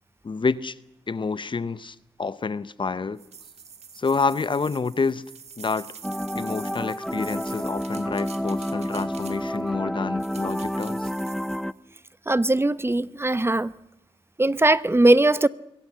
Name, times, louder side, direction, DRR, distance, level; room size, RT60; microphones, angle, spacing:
voice 1, 0.2-0.8 1.1-3.2 4.0-5.2 5.6-5.9 6.3-11.1, left 4 dB, 50° left, 0.9 m, -28 dB
sound 1, 3.2-9.7 10.2-11.7, right 6 dB, 80° right, 1.7 m, -45 dB
sound 2, 6.0-11.7, equal, ahead, 0.8 m, -30 dB
voice 2, 12.3-13.7 14.4-15.5, right 2 dB, 20° right, 0.9 m, -20 dB
22.0 x 18.0 x 7.5 m
cardioid pair, 50°, 11 cm